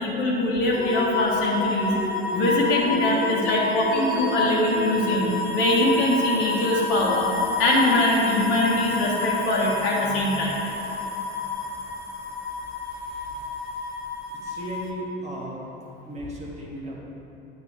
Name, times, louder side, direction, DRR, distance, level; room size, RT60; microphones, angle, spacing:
voice 1, 0.0-7.3 7.6-10.5, left 1 dB, 55° left, -3 dB, 1.3 m, -23 dB
sound 1, 0.7-14.9, left 4 dB, 35° left, 0.9 m, -29 dB
voice 2, 14.3-15.6 16.1-17.0, right 1 dB, 20° right, -4 dB, 1.8 m, -35 dB
9.1 x 5.9 x 3.4 m, 2.9 s
figure-of-eight pair, 65°, 30 cm